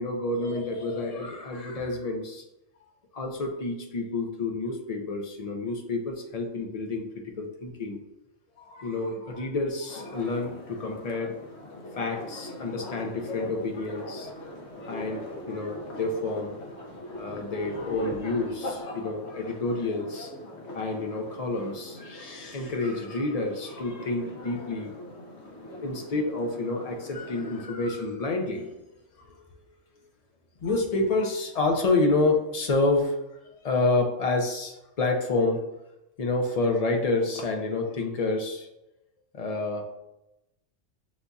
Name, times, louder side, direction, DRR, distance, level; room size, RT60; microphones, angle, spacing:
voice 1, 0.0-2.4 3.1-8.0 8.6-11.4 12.0-14.3 14.9-16.5 17.2-20.3 20.7-24.9 25.7-28.7 29.2-29.4 30.6-33.2 33.5-35.6 36.2-38.7 39.3-39.9, left 2 dB, 45° left, 2 dB, 0.5 m, -29 dB
sound 1, 9.9-27.6, left 1 dB, 60° left, 1.0 m, -42 dB
sound 2, 13.6-18.8, right 1 dB, 45° right, 0.6 m, -45 dB
6.9 x 2.6 x 2.3 m, 0.91 s
omnidirectional pair, 1.3 m